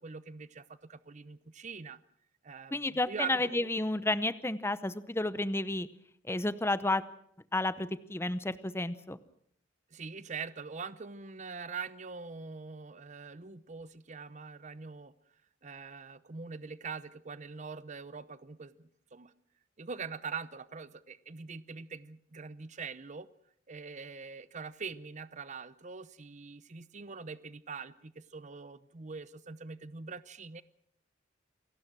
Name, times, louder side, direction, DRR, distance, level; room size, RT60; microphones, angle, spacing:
voice 1, 0.0-2.0 2.4-3.7 9.9-15.1 15.6-19.3 19.8-23.3 23.7-30.6, right 5 dB, 40° right, 15 dB, 0.8 m, -43 dB
voice 2, 2.7-5.9 6.2-7.0 7.5-9.2, left 2 dB, 15° left, 14 dB, 0.8 m, -31 dB
28.0 x 17.5 x 6.2 m, 0.67 s
head